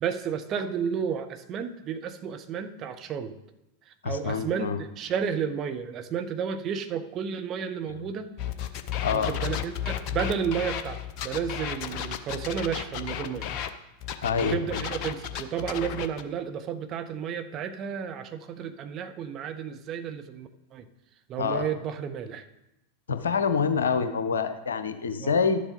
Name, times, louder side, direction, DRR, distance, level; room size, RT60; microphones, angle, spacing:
voice 1, 0.0-3.3 4.0-8.3 9.1-13.5 14.4-20.8 21.3-22.4 25.2-25.4, right 7 dB, 30° right, 8 dB, 0.9 m, -32 dB
voice 2, 4.0-4.8 9.0-9.3 14.2-14.8 21.4-21.7 23.1-25.6, left 5 dB, 70° left, 9 dB, 0.9 m, -26 dB
sound 1, 8.4-13.7 14.0-16.2, left 10 dB, 40° left, 0.8 m, -33 dB
12.0 x 7.3 x 5.3 m, 0.88 s
figure-of-eight pair, 90°, 0 cm